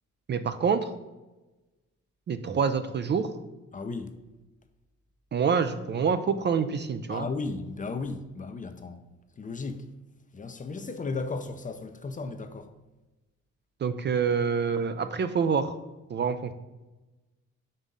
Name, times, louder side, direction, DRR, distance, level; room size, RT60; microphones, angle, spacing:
voice 1, 0.3-0.9 2.3-3.3 5.3-7.3 13.8-15.8 16.1-16.5, right 6 dB, 35° right, 0.4 m, -26 dB
voice 2, 3.7-4.1 7.1-9.0 9.4-9.9 10.3-12.7, left 3 dB, 25° left, 0.5 m, -35 dB
5.4 x 3.6 x 5.3 m
cardioid pair, 90°, 30 cm